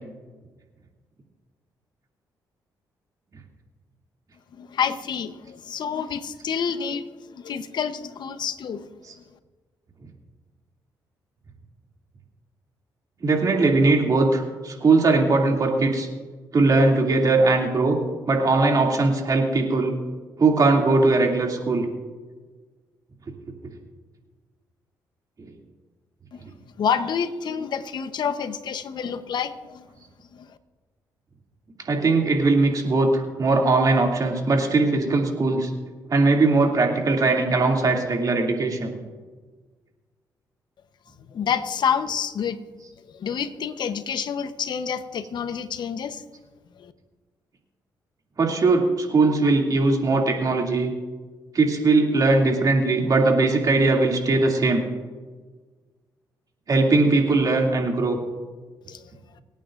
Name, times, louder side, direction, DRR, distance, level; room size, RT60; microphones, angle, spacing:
voice 1, 4.6-8.8 26.3-26.4 26.8-29.8 30.3-30.4 41.3-42.6 43.1-46.2 46.8-46.9 58.9-59.0, left 7 dB, 65° left, 11 dB, 0.9 m, -28 dB
voice 2, 13.2-16.1 16.5-18.0 18.3-19.9 20.4-21.9 25.4-25.5 26.4-26.5 31.9-35.7 36.1-38.9 48.4-50.9 51.5-54.8 56.7-58.2, right 3 dB, 50° right, 0 dB, 2.6 m, -20 dB
25.5 x 9.1 x 2.6 m, 1.4 s
cardioid pair, 70°, 8 cm